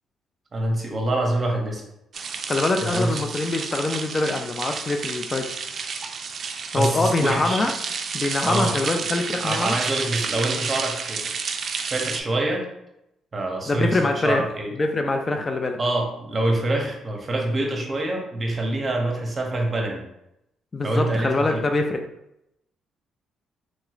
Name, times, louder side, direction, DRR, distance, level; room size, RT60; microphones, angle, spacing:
voice 1, 0.5-1.8 2.8-3.2 6.8-7.6 8.4-8.7 9.4-11.3 11.8-12.7 13.3-14.7 15.8-20.0 20.8-21.6, right 2 dB, 35° right, 1 dB, 0.8 m, -25 dB
sound 1, 2.1-12.2, right 5 dB, 55° right, 0.3 m, -31 dB
voice 2, 2.5-5.6 6.7-7.7 8.1-9.8 13.7-14.4 14.7-15.8 20.7-22.0, left 2 dB, 30° left, 4 dB, 0.3 m, -24 dB
3.1 x 2.9 x 2.4 m, 0.84 s
cardioid pair, 90°, 0 cm